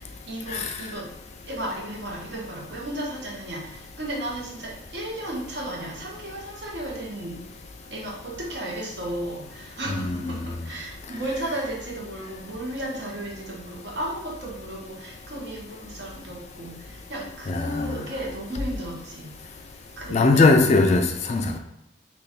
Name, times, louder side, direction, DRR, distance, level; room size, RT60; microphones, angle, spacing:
voice 1, 0.3-1.1 1.5-3.6 4.0-7.4 7.9-9.4 9.8-10.4 10.7-16.7 17.1-19.3 20.0-20.5, right 1 dB, 60° right, 1.0 m, -34 dB
voice 2, 9.9-10.5 17.5-18.0 20.1-21.6, left 3 dB, 35° left, 0.3 m, -20 dB
3.3 x 2.3 x 4.0 m
head